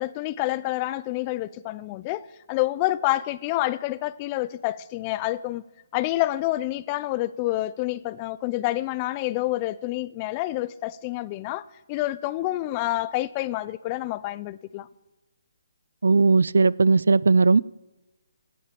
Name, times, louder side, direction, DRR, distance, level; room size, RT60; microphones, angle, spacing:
voice 1, 0.0-5.6 5.9-14.9, left 17 dB, 25° left, 0.5 m, -28 dB
voice 2, 16.0-17.6, right 4 dB, 85° right, 0.4 m, -18 dB
16.5 x 8.6 x 6.8 m
hypercardioid pair, 160°, 0 cm